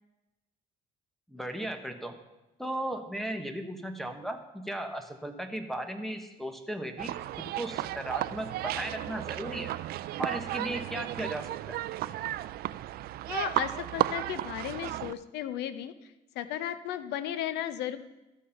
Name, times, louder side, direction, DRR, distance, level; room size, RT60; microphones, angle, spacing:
voice 1, 1.3-2.2 2.6-9.7 10.2-11.8, right 1 dB, ahead, 7 dB, 1.1 m, -36 dB
sound 1, 7.0-15.1, right 14 dB, 65° right, 0.4 m, -34 dB
voice 2, 13.3-15.9 16.3-18.0, left 11 dB, 85° left, 13 dB, 0.7 m, -34 dB
13.0 x 6.5 x 5.7 m, 1.0 s
cardioid pair, 110°, 17 cm